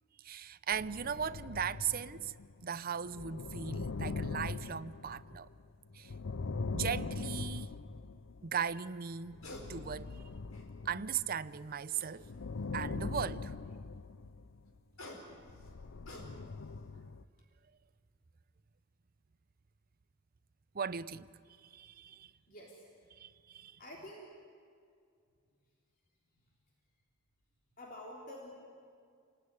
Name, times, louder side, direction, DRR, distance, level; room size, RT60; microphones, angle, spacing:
voice 1, 0.2-2.4 2.6-5.5 5.9-6.1 6.7-7.7 8.4-9.4 9.7-10.3 10.8-12.2 12.7-13.5 20.7-21.3 21.6-22.3 23.1-23.8, right 7 dB, 45° right, 0.6 m, -38 dB
sound 1, 0.7-8.6 9.2-11.6 12.2-14.8 15.4-17.2, left 4 dB, 65° left, 0.6 m, -41 dB
sound 2, 6.2-6.4 9.1-9.7 10.1-10.9 11.9-12.6 14.7-16.7 17.1-17.4, left 1 dB, 80° left, 4.4 m, -51 dB
voice 2, 22.5-23.1 23.8-24.3 27.8-28.5, left 1 dB, 40° left, 3.4 m, -49 dB
29.0 x 19.5 x 9.6 m
head